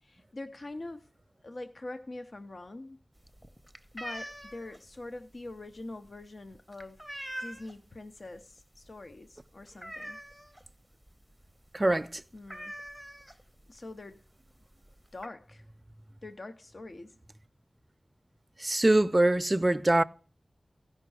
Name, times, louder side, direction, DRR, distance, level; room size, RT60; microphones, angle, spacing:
voice 1, 0.0-1.1 1.4-3.0 3.9-7.0 7.4-10.2 12.3-12.7 13.7-14.2 15.1-15.6 16.2-17.2, left 2 dB, 60° left, 0.6 m, -44 dB
sound 1, 3.2-7.9 8.3-8.6 8.9-9.0 9.3-10.7 11.1-11.2 11.4-11.6 11.9-12.0 12.4-13.7 14.5-14.6 14.8-15.3, equal, 5° left, 0.7 m, -43 dB
voice 2, 11.7-12.2 18.6-20.0, right 1 dB, 25° right, 0.4 m, -24 dB
15.5 x 5.4 x 4.7 m
wide cardioid pair, 70°, 0 cm